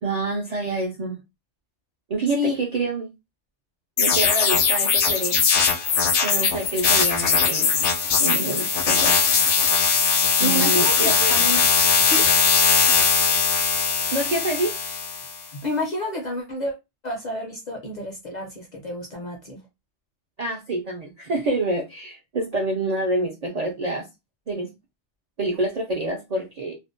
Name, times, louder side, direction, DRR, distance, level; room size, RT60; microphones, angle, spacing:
voice 1, 0.0-1.2 2.1-3.1 4.0-5.5 6.2-7.7 8.2-9.2 10.4-11.4 14.1-14.7 20.4-24.1 24.5-24.7 25.4-26.8, right 2 dB, 55° right, 0.4 m, -27 dB
sound 1, 4.0-15.4, left 6 dB, 80° left, 0.9 m, -20 dB
voice 2, 10.4-11.6 12.0-12.3 15.4-16.7 17.0-19.6, left 2 dB, 50° left, 0.5 m, -29 dB
2.5 x 2.0 x 2.5 m
omnidirectional pair, 1.2 m